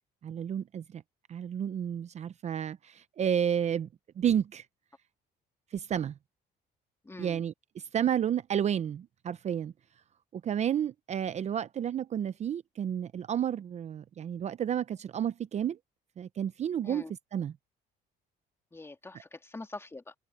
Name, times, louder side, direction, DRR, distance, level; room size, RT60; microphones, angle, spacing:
voice 1, 0.2-1.0 1.3-3.9 4.2-4.7 5.7-6.2 7.2-9.7 10.3-15.8 16.2-17.0 17.3-17.5, right 9 dB, 40° right, 0.6 m, -31 dB
voice 2, 7.0-7.4 16.8-17.1 18.7-20.1, left 2 dB, 15° left, 2.4 m, -44 dB
cardioid pair, 110°, 17 cm